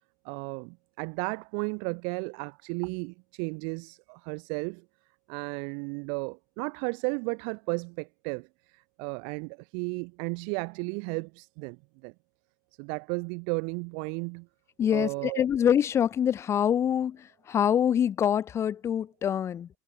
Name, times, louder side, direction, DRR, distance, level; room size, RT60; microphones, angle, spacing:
voice 1, 0.2-4.8 5.3-12.1 12.8-14.5 14.9-15.4, right 40 dB or more, 65° right, 2.5 m, -34 dB
voice 2, 14.8-17.2 17.5-19.7, left 9 dB, 30° left, 0.6 m, -25 dB
supercardioid pair, 115°, 10 cm